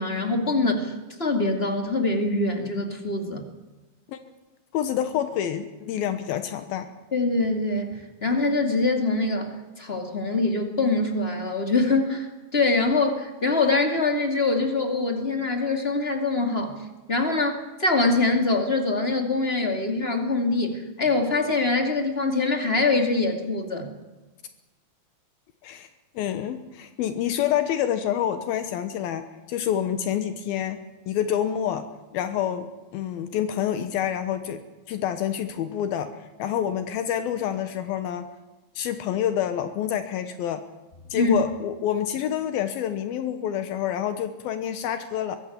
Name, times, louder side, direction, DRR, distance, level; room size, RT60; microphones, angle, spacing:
voice 1, 0.0-3.4 7.1-7.9 8.2-23.9 41.1-41.4, left 3 dB, 20° left, 5 dB, 1.9 m, -24 dB
voice 2, 4.7-6.9 25.6-25.9 26.2-31.9 32.1-34.6 34.9-38.3 38.8-40.6 41.1-45.4, left 10 dB, 80° left, 10 dB, 2.9 m, -27 dB
23.0 x 16.0 x 8.6 m, 1.2 s
omnidirectional pair, 4.4 m